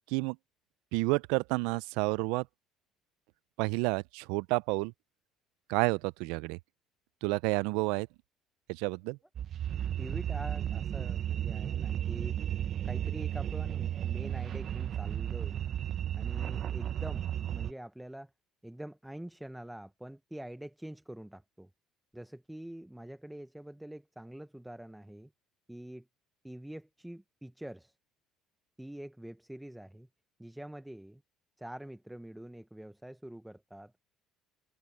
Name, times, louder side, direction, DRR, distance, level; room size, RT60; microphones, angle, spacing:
voice 1, 0.9-2.5 3.6-4.9 5.7-6.6 7.2-8.1 8.7-9.2, right 25 dB, 85° right, 0.4 m, -30 dB
sound 1, 9.4-17.7, right 10 dB, 50° right, 0.9 m, -34 dB
voice 2, 10.0-12.4 12.8-15.7 16.2-18.3 18.6-21.7 22.1-25.3 25.7-26.0 26.4-27.9 28.8-30.1 30.4-31.2 31.6-33.9, right 1 dB, 5° right, 1.0 m, -45 dB
supercardioid pair, 100°, 0 cm